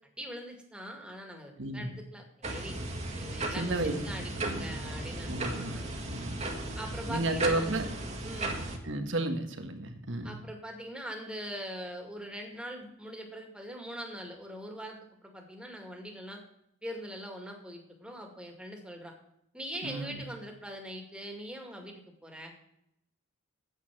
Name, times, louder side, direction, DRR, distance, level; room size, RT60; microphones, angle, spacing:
voice 1, 0.2-2.8 3.2-5.9 6.8-7.8 8.2-8.7 10.2-16.4 16.8-19.1 19.5-22.5, equal, 5° right, 2 dB, 2.1 m, -42 dB
voice 2, 1.6-1.9 3.6-3.9 4.5-4.7 5.3-5.7 6.1-6.4 7.1-7.9 8.8-10.4 19.8-20.2, right 2 dB, 70° right, 6 dB, 1.5 m, -32 dB
sound 1, 2.4-8.8, right 2 dB, 35° right, 1.8 m, -36 dB
9.1 x 8.4 x 6.0 m, 0.77 s
head